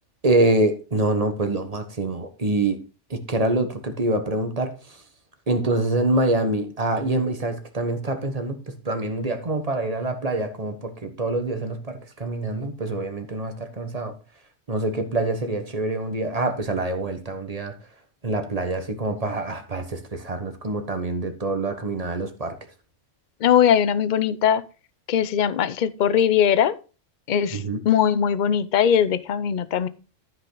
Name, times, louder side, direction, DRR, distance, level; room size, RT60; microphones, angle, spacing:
voice 1, 0.2-2.8 3.1-5.0 5.5-14.2 14.7-17.7 18.2-22.6 27.5-27.8, right 2 dB, 30° right, 1.3 m, -25 dB
voice 2, 23.4-24.6 25.1-26.7 27.3-27.6 27.9-29.9, left 8 dB, 45° left, 0.7 m, -20 dB
13.0 x 5.8 x 3.9 m
omnidirectional pair, 1.3 m